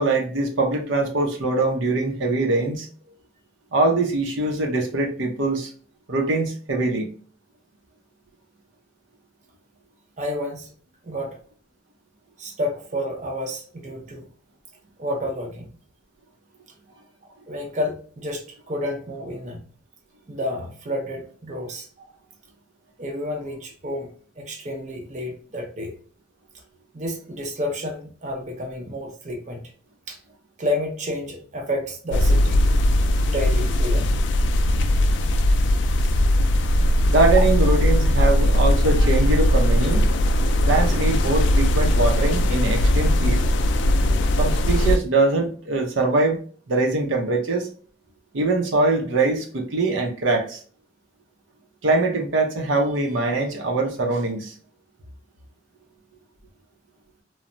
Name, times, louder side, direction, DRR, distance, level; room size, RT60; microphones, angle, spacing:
voice 1, 0.0-2.9 3.7-5.7 6.1-7.1 37.1-40.1 40.7-43.4 44.4-46.4 46.7-47.7 48.3-50.6 51.8-54.5, right 2 dB, 80° right, 2 dB, 0.7 m, -22 dB
voice 2, 10.2-10.7 11.0-11.4 12.4-14.3 15.0-15.7 17.5-19.6 20.3-22.1 23.0-25.9 26.9-29.7 30.1-30.2 30.6-32.7 33.3-34.1 35.2-35.3, left 1 dB, 40° right, 1 dB, 0.6 m, -30 dB
sound 1, 32.1-45.0, left 1 dB, 65° left, 0.3 m, -19 dB
3.1 x 2.0 x 2.5 m, 0.41 s
head